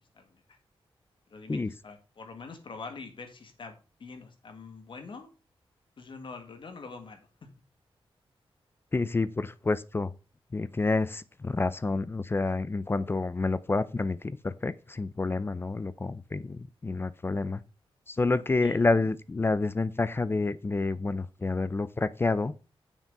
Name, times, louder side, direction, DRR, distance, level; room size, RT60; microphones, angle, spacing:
voice 1, 1.3-5.3 6.0-7.5 18.6-18.8, left 4 dB, 60° left, 1.7 m, -45 dB
voice 2, 8.9-10.1 10.5-17.6 18.1-22.5, left 3 dB, 25° left, 0.4 m, -28 dB
7.2 x 6.0 x 5.3 m
wide cardioid pair, 140°, 10 cm